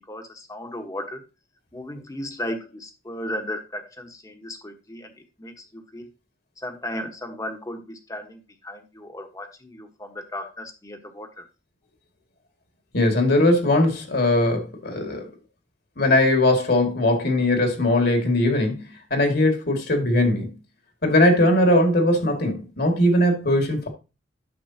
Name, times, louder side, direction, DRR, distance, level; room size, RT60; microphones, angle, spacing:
voice 1, 0.1-1.2 1.7-5.1 5.4-6.1 6.6-11.4, left 1 dB, 20° left, 1.3 m, -35 dB
voice 2, 12.9-15.3 16.0-18.8 19.1-20.5 21.0-23.9, left 1 dB, 60° left, 2.2 m, -20 dB
9.9 x 6.9 x 2.9 m
head